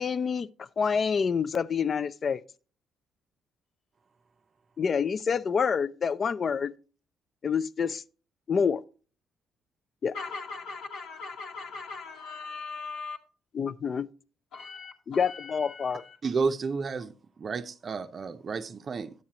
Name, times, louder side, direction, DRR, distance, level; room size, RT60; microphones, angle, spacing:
voice 1, 0.0-2.4 4.8-6.7 7.4-8.0 8.5-8.8 10.0-10.1 13.5-14.1 15.1-16.0, left 6 dB, 45° left, 0.4 m, -27 dB
voice 2, 10.1-13.2 14.5-16.2, left 4 dB, 85° left, 1.4 m, -40 dB
voice 3, 16.2-17.1 17.4-19.1, right 4 dB, 45° right, 0.5 m, -31 dB
9.2 x 7.3 x 2.8 m
cardioid pair, 90°, 0 cm